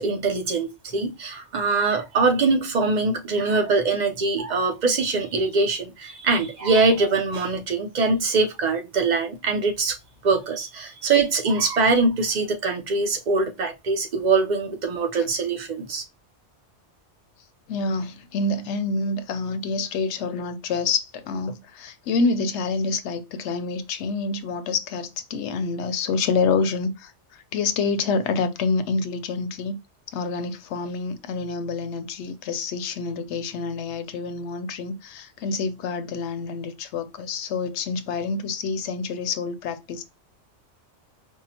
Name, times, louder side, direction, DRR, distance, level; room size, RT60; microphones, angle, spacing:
voice 1, 0.0-10.0 10.2-16.0, right 3 dB, 50° right, 0.6 m, -23 dB
voice 2, 17.7-29.8 30.1-40.0, left 4 dB, 75° left, 0.9 m, -27 dB
5.4 x 2.1 x 2.8 m
omnidirectional pair, 1.2 m